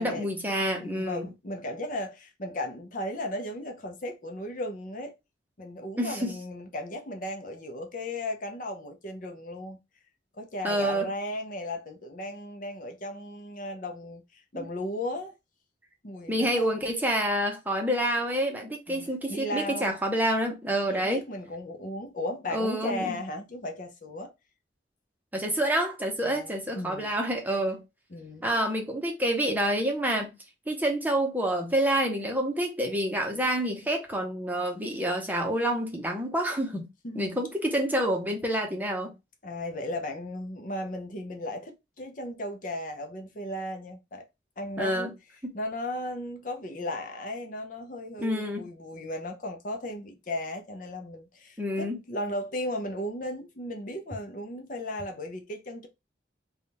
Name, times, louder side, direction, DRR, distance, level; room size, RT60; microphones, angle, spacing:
voice 1, 0.0-1.3 6.0-6.3 10.6-11.1 14.5-14.7 16.3-21.2 22.5-23.2 25.3-27.8 28.4-30.4 30.7-36.9 37.1-39.1 44.8-45.1 45.4-45.5 48.2-48.6 51.6-52.0, right 1 dB, 10° right, 0.7 m, -28 dB
voice 2, 0.8-5.1 5.6-9.8 10.4-15.3 16.0-16.8 18.9-20.0 20.9-24.3 26.2-27.1 28.1-28.5 37.0-37.4 39.4-44.3 44.6-45.1 45.5-55.9, left 1 dB, 45° left, 0.7 m, -36 dB
3.5 x 2.3 x 4.1 m
head